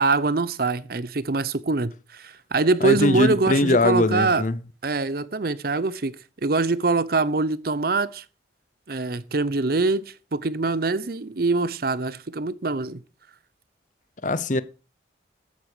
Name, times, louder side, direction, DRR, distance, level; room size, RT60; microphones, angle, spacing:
voice 1, 0.0-4.4 4.8-6.1 6.4-8.2 8.9-13.0, right 3 dB, 50° right, 0.7 m, -24 dB
voice 2, 2.8-4.6 14.2-14.6, left 2 dB, 40° left, 0.7 m, -21 dB
14.0 x 8.3 x 4.9 m
head